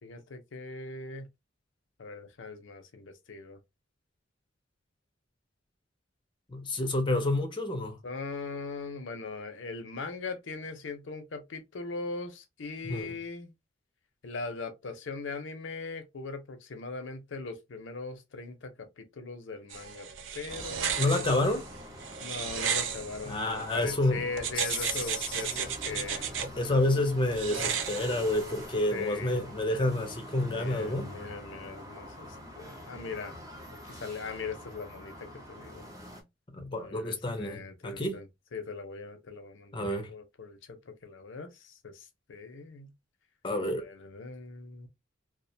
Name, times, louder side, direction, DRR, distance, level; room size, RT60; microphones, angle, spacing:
voice 1, 0.0-1.3 2.0-3.6 8.0-13.5 14.2-20.1 20.3-21.4 22.2-26.5 28.9-29.4 30.6-33.3 33.9-35.8 36.8-42.9 43.7-44.9, left 4 dB, 70° left, 0.6 m, -40 dB
voice 2, 6.5-8.0 12.8-13.1 21.0-21.6 23.2-24.2 24.6-25.0 26.4-31.1 36.5-38.2 39.7-40.1 43.4-43.9, left 1 dB, 25° left, 0.5 m, -29 dB
sound 1, 19.7-23.9 24.4-26.5 27.3-28.6, right 7 dB, 70° right, 0.4 m, -34 dB
sound 2, 20.5-36.2, equal, 20° right, 0.5 m, -45 dB
2.4 x 2.1 x 2.6 m
head